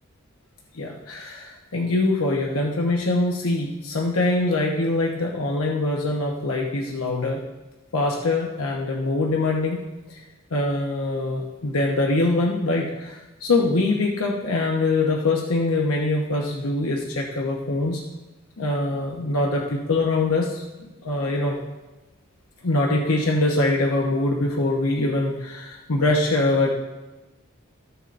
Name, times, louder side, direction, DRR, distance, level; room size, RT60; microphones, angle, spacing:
voice 1, 0.7-7.4 7.9-9.8 10.5-18.0 18.6-21.6 22.6-26.7, left 2 dB, 85° left, -1 dB, 0.9 m, -23 dB
13.5 x 7.2 x 2.6 m, 1.1 s
head